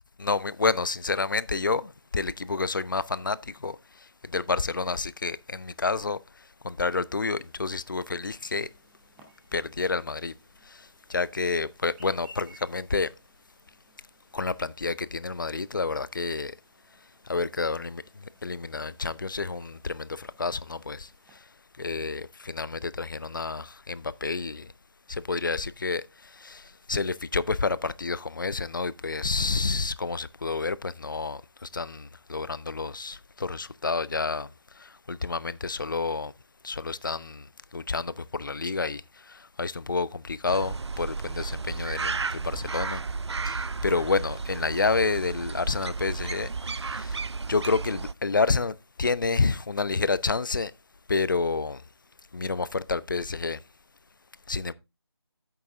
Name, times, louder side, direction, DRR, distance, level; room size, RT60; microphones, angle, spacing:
voice 1, 0.2-3.8 4.2-6.2 6.6-8.7 9.5-10.3 10.7-13.1 14.3-16.6 17.3-21.1 21.8-24.7 25.1-34.5 34.8-36.3 36.6-37.5 37.7-43.0 43.5-47.2 47.5-50.7 51.1-51.8 52.3-53.6 54.5-54.7, left 4 dB, 50° left, 0.5 m, -29 dB
Chirp tweet, 7.2-21.4, equal, 5° right, 0.6 m, -60 dB
sound 1, 40.5-48.1, right 4 dB, 90° right, 0.4 m, -33 dB
8.7 x 6.8 x 3.5 m
figure-of-eight pair, 165°, 14 cm